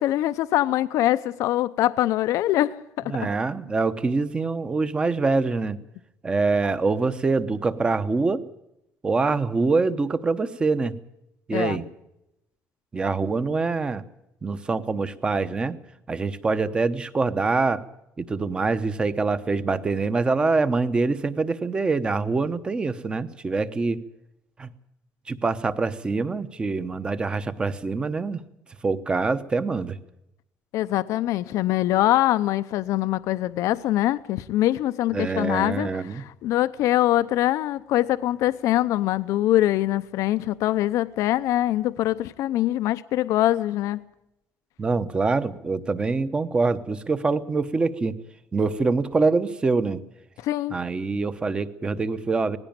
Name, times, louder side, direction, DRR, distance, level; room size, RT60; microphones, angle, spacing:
voice 1, 0.0-2.8 3.0-3.1 11.5-11.8 30.7-44.0 50.4-50.8, left 14 dB, 65° left, 0.7 m, -23 dB
voice 2, 3.1-5.8 6.2-8.4 9.0-10.9 11.5-11.8 12.9-14.0 14.4-15.8 16.1-17.8 18.2-24.0 24.6-24.7 25.3-28.4 28.8-30.0 35.1-36.2 44.8-48.1 48.5-50.0 50.7-52.6, right 3 dB, 15° right, 0.9 m, -24 dB
19.0 x 16.0 x 8.8 m
cardioid pair, 180°, 6 cm